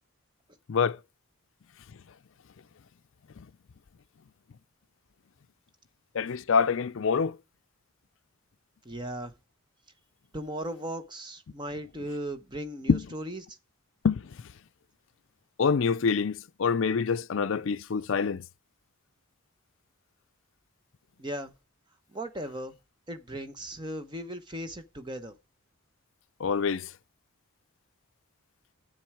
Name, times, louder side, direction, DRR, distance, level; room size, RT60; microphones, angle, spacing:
voice 1, 6.1-7.3 12.9-13.0 14.0-14.2 15.6-18.4 26.4-26.9, left 5 dB, 65° left, 0.4 m, -26 dB
voice 2, 8.8-9.3 10.3-13.6 21.2-21.5 22.1-22.7 23.1-25.3, right 1 dB, 20° right, 0.9 m, -37 dB
10.5 x 7.6 x 4.8 m
head